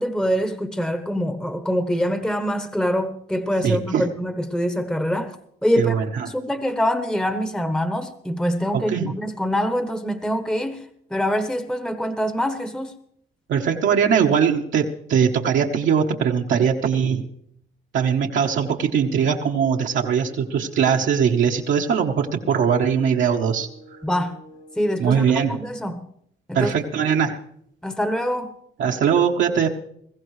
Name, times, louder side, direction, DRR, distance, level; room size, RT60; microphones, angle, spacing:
voice 1, 0.0-5.4 5.6-6.0 6.3-13.0 24.0-24.4 24.8-25.2 25.5-26.0 26.5-26.7 27.8-28.5, equal, 5° left, 0.9 m, -24 dB
voice 2, 3.6-4.0 5.8-6.3 8.7-9.1 13.5-17.3 17.9-23.7 25.0-25.6 26.5-27.4 28.8-29.7, right 7 dB, 70° right, 1.1 m, -21 dB
sound 1, 18.4-25.4, right 2 dB, 85° left, 4.6 m, -47 dB
21.0 x 15.0 x 3.2 m
cardioid pair, 90°, 20 cm